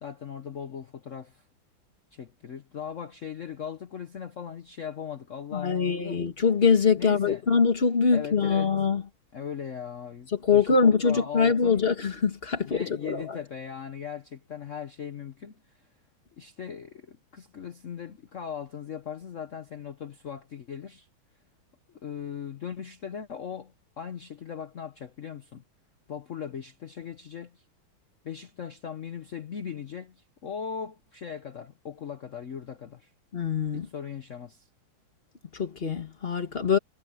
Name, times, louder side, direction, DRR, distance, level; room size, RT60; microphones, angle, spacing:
voice 1, 0.0-1.4 2.1-6.2 7.0-7.4 8.1-8.7 9.3-11.9 12.6-15.8 16.4-21.1 21.9-25.6 26.1-27.6 28.2-33.1 33.7-34.7, left 7 dB, 50° left, 1.0 m, -39 dB
voice 2, 5.5-9.0 10.3-13.4 33.3-33.9 35.5-36.8, left 5 dB, 30° left, 1.6 m, -23 dB
omnidirectional pair, 2.2 m